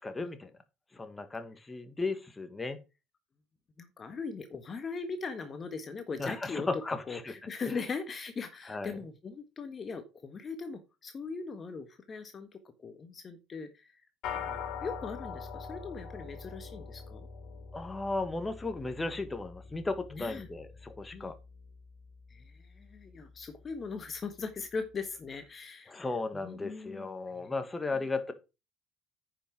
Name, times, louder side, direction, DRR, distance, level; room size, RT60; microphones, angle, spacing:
voice 1, 0.0-0.5 0.9-2.8 6.2-7.3 7.7-7.9 8.7-9.0 17.7-21.4 25.9-28.3, left 3 dB, 20° left, 1.8 m, -35 dB
voice 2, 3.8-6.7 7.1-13.9 14.3-17.3 20.1-20.5 21.1-21.3 22.3-26.1 26.4-27.1 27.4-27.5, left 4 dB, 35° left, 1.4 m, -40 dB
sound 1, 14.2-23.8, left 6 dB, 60° left, 3.2 m, -44 dB
9.8 x 6.2 x 4.7 m
hypercardioid pair, 65°, 0 cm